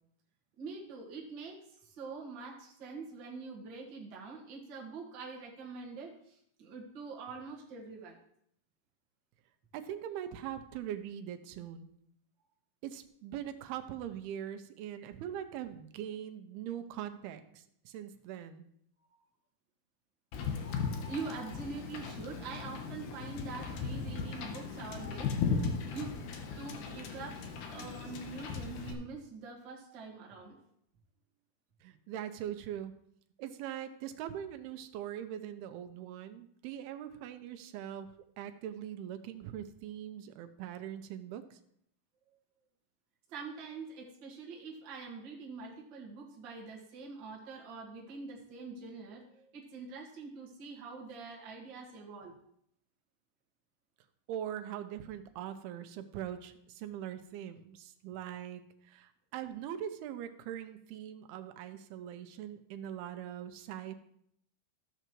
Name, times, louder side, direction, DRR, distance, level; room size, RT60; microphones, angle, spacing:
voice 1, 0.6-8.2 15.0-15.1 19.0-19.2 21.1-25.3 25.9-26.2 26.6-27.4 27.7-30.6 43.3-52.3, right 4 dB, 45° right, -3 dB, 1.8 m, -45 dB
voice 2, 9.7-11.9 12.8-18.7 31.8-32.9 33.4-38.1 38.4-41.6 54.3-63.9, right 10 dB, 85° right, 9 dB, 2.6 m, -42 dB
Wind / Boat Water vehicle, 20.3-28.9, left 5 dB, 70° left, 1.9 m, -37 dB
14.0 x 6.8 x 3.1 m, 0.71 s
omnidirectional pair, 4.4 m